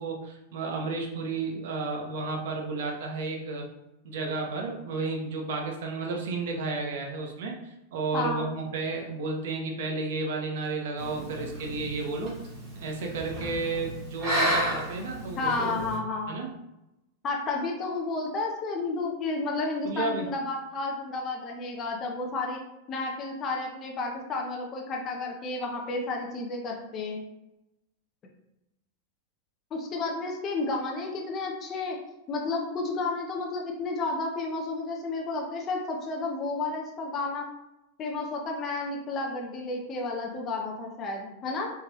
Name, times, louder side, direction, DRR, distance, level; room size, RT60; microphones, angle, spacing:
voice 1, 0.0-3.6 4.0-12.3 12.8-15.8 16.3-16.5 19.8-20.3, right 3 dB, 55° right, 1 dB, 0.9 m, -32 dB
voice 2, 8.1-8.5 15.4-16.4 17.2-22.6 22.9-27.2 29.7-32.0 32.3-37.5 38.0-41.7, left 3 dB, 20° left, 0 dB, 0.5 m, -31 dB
sound 1, 11.0-16.0, equal, 35° right, 1.3 m, -32 dB
4.2 x 3.7 x 3.0 m, 0.92 s
supercardioid pair, 180°, 0 cm